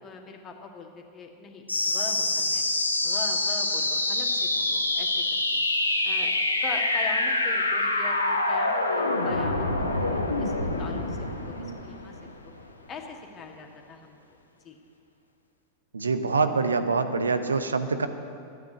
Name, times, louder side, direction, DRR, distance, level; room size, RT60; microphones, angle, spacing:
voice 1, 0.0-2.6 3.0-5.2 5.5-5.6 6.0-6.3 6.6-9.6 9.9-10.5 10.8-12.5 12.9-14.2 14.6-14.8, left 4 dB, 30° left, 2 dB, 1.9 m, -41 dB
sound 1, 1.7-12.7, left 2 dB, 85° left, 1.2 m, -26 dB
voice 2, 15.9-18.1, right 4 dB, 75° right, 10 dB, 0.8 m, -25 dB
13.5 x 9.2 x 9.3 m, 2.3 s
figure-of-eight pair, 90°, 0 cm